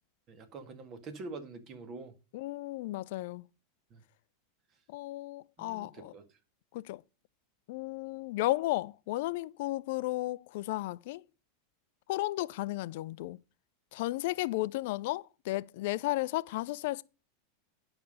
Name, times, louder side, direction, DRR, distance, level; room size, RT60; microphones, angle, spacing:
voice 1, 0.3-2.1 3.9-4.0 5.6-6.2, right 3 dB, 40° right, 1.9 m, -45 dB
voice 2, 2.3-3.5 4.9-6.1 6.7-7.0 7.7-11.2 12.1-13.4 13.9-17.0, left 18 dB, 60° left, 0.4 m, -34 dB
10.5 x 5.9 x 5.4 m
hypercardioid pair, 90°, 0 cm